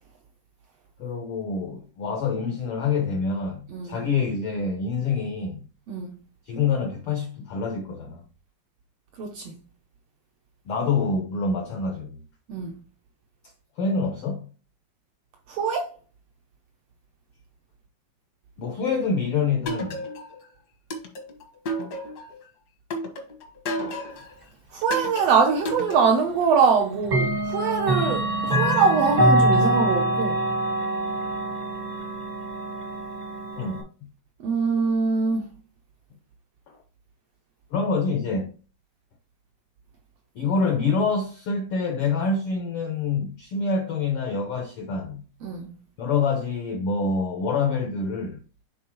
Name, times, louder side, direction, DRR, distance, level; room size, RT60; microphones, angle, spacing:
voice 1, 1.0-5.7 6.5-8.2 10.7-12.2 13.8-14.5 18.6-20.1 33.6-33.9 36.7-36.8 37.7-38.5 40.3-45.2 46.0-48.4, left 4 dB, 80° left, 1.2 m, -26 dB
voice 2, 5.9-6.2 9.2-9.5 12.5-12.8 15.5-15.9 24.7-30.4 34.4-35.5 45.4-45.8, right 5 dB, 75° right, 1.5 m, -23 dB
sound 1, 19.7-20.4 20.9-22.4 22.9-24.3 24.9-26.3, equal, 65° left, 1.0 m, -32 dB
Clock, 25.7-25.8 27.0-33.8, right 1 dB, 35° right, 0.6 m, -24 dB
9.0 x 3.6 x 2.9 m
omnidirectional pair, 3.6 m